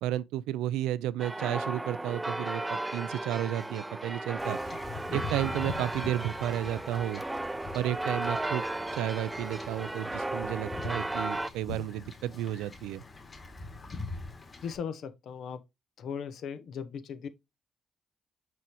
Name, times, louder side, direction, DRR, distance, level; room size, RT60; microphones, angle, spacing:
voice 1, 0.0-4.6 5.1-7.2 7.7-8.6 8.9-13.0, right 12 dB, 90° right, 0.3 m, -32 dB
sound 1, 1.2-11.5, right 2 dB, 20° right, 0.5 m, -35 dB
Wind / Ocean / Boat Water vehicle, 4.4-14.8, left 3 dB, 40° left, 2.3 m, -43 dB
voice 2, 14.6-15.6 16.0-17.3, left 7 dB, 75° left, 0.8 m, -38 dB
6.2 x 5.4 x 3.0 m
supercardioid pair, 50°, 0 cm